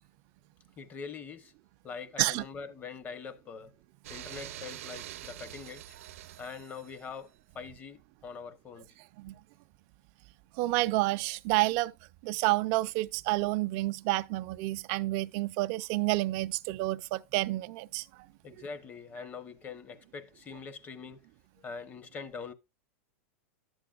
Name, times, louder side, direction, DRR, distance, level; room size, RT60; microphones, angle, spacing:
voice 1, 0.8-1.5 1.8-3.8 4.1-6.0 6.4-8.9 18.4-21.2 21.6-22.5, left 5 dB, 20° left, 0.9 m, -43 dB
sound 1, 4.0-7.2, right 13 dB, 80° right, 0.7 m, -45 dB
voice 2, 10.6-11.9 12.2-18.0, right 19 dB, 45° right, 0.5 m, -29 dB
11.0 x 7.7 x 2.4 m
supercardioid pair, 145°, 7 cm